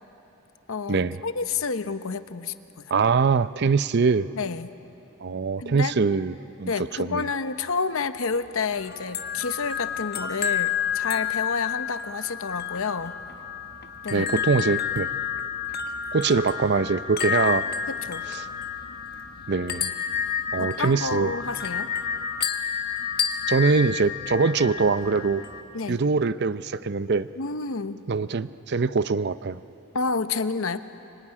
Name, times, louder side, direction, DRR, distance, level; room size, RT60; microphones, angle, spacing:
voice 1, 0.7-2.9 4.4-4.8 5.6-5.9 6.7-13.1 14.0-14.3 16.8-16.9 17.9-18.2 20.6-21.9 25.7-26.0 27.4-28.1 29.9-30.8, left 4 dB, 70° left, 11 dB, 0.9 m, -29 dB
voice 2, 2.9-4.3 5.2-6.3 6.6-6.7 7.0-7.2 14.1-15.1 16.1-17.6 18.4-18.5 19.5-19.9 20.5-21.3 23.5-25.5 25.9-27.3 28.1-29.6, right 4 dB, 50° right, 15 dB, 0.5 m, -23 dB
sound 1, 8.7-25.6, left 8 dB, 45° left, 1.4 m, -30 dB
25.0 x 24.0 x 9.8 m, 3.0 s
head